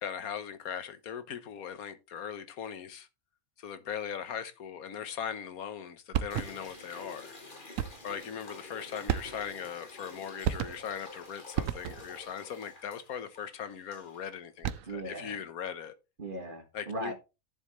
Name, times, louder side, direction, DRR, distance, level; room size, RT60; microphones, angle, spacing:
voice 1, 0.0-3.1 3.6-7.4 8.0-15.9 16.7-17.1, left 8 dB, 85° left, 1.5 m, -39 dB
sound 1, 6.1-6.8 7.8-8.2 9.1-9.7 10.4-11.0 11.6-12.2 14.4-15.1, right 10 dB, 70° right, 1.0 m, -33 dB
sound 2, 6.3-14.3, left 2 dB, 35° left, 1.9 m, -49 dB
voice 2, 14.9-15.4 16.2-17.1, right 2 dB, 35° right, 2.0 m, -38 dB
10.5 x 7.4 x 3.1 m
omnidirectional pair, 1.5 m